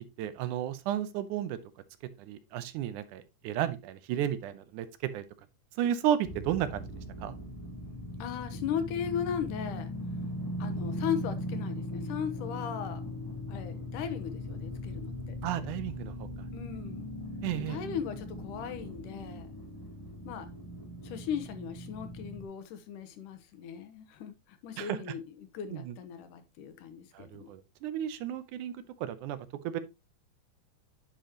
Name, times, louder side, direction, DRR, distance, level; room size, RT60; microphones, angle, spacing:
voice 1, 0.2-1.6 2.2-4.9 5.1-5.2 5.8-6.9 7.2-7.4 15.4-16.3 17.4-17.8 24.8-25.0 25.7-25.9 27.1-29.4 29.6-29.8, right 11 dB, 80° right, 2.2 m, -33 dB
sound 1, 6.2-22.4, left 1 dB, 10° left, 1.2 m, -39 dB
voice 2, 8.2-9.9 10.6-13.0 13.5-15.7 16.5-17.1 17.6-19.5 20.3-20.5 21.0-27.5, left 8 dB, 80° left, 2.5 m, -37 dB
10.0 x 5.1 x 2.9 m
omnidirectional pair, 3.6 m